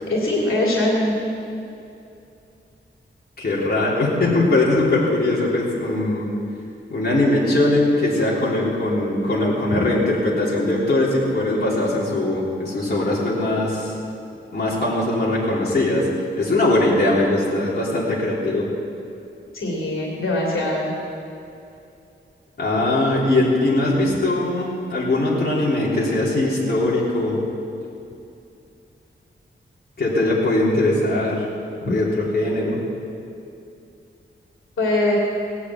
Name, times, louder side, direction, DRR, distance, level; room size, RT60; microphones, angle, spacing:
voice 1, 0.1-1.1 9.7-9.8 19.5-20.9 34.8-35.1, left 1 dB, 80° left, -3 dB, 3.0 m, -22 dB
voice 2, 3.4-6.3 6.9-14.0 14.5-16.1 16.4-18.6 22.6-27.4 30.0-31.5 31.9-32.8, left 2 dB, 50° left, -6 dB, 3.6 m, -20 dB
18.5 x 8.3 x 8.7 m, 2.6 s
wide cardioid pair, 145°, 21 cm